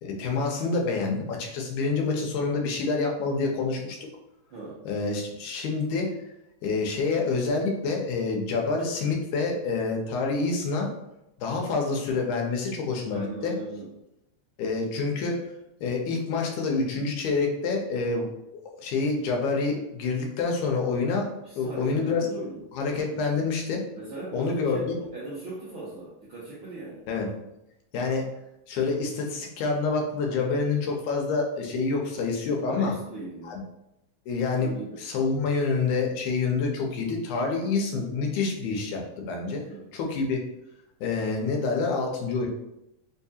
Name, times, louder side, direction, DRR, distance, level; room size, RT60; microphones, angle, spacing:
voice 1, 0.0-4.0 4.9-6.2 6.6-10.9 11.4-13.6 14.6-15.4 15.8-18.3 18.7-21.3 21.6-22.3 22.7-23.8 24.3-25.0 27.1-27.3 27.9-28.3 28.7-32.9 33.4-33.6 34.3-34.7 35.0-39.6 39.9-40.4 41.0-42.5, left 4 dB, 85° left, 0 dB, 2.2 m, -27 dB
voice 2, 4.5-4.8 13.1-13.9 21.4-22.6 24.0-27.0 32.7-33.6 34.5-35.0 39.5-39.9, right 2 dB, 75° right, -8 dB, 1.2 m, -39 dB
4.7 x 2.7 x 2.3 m, 0.88 s
omnidirectional pair, 3.4 m